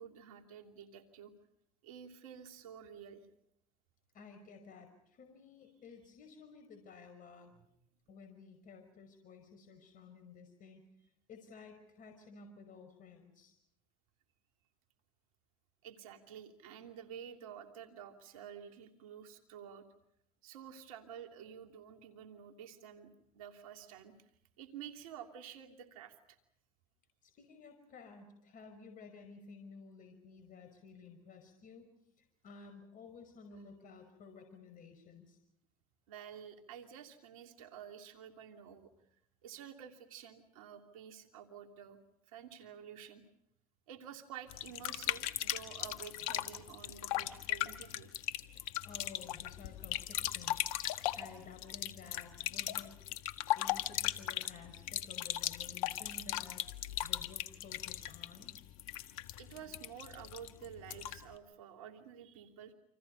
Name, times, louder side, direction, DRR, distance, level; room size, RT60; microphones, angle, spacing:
voice 1, 0.0-1.3 1.8-3.2 7.6-7.7 15.8-19.8 20.4-23.1 23.3-24.1 24.6-26.1 36.1-38.9 39.4-42.0 42.3-43.2 43.9-48.1 58.0-58.1 59.4-62.7, right 8 dB, 85° right, 5 dB, 2.9 m, -50 dB
voice 2, 4.1-7.5 8.1-10.8 11.3-13.5 27.2-31.9 32.2-35.4 48.5-50.6 51.2-52.9 53.6-56.6 57.0-58.5, left 5 dB, 50° left, 6 dB, 5.6 m, -54 dB
sound 1, 44.5-61.3, left 14 dB, 80° left, 1.6 m, -38 dB
29.5 x 27.0 x 5.5 m, 0.73 s
hypercardioid pair, 80°, 18 cm